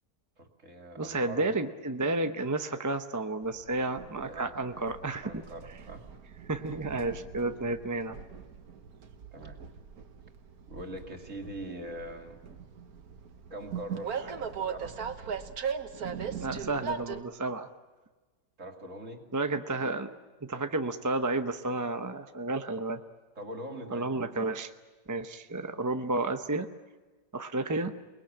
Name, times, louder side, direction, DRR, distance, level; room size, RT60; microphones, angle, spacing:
voice 1, 0.4-1.5 4.2-4.8 5.2-6.0 6.3-6.4 7.6-7.7 9.3-9.6 10.7-12.4 13.5-15.0 18.6-19.2 23.4-24.1, right 1 dB, 45° right, 3 dB, 3.2 m, -42 dB
voice 2, 1.0-5.3 6.5-8.2 16.4-17.7 19.3-20.1 20.5-23.0 23.9-24.7 25.1-26.7 27.3-27.9, right 2 dB, 20° right, 7 dB, 0.5 m, -31 dB
Train, 3.4-17.2, right 7 dB, 65° right, 1.7 m, -40 dB
29.0 x 21.0 x 8.9 m, 1.3 s
omnidirectional pair, 1.8 m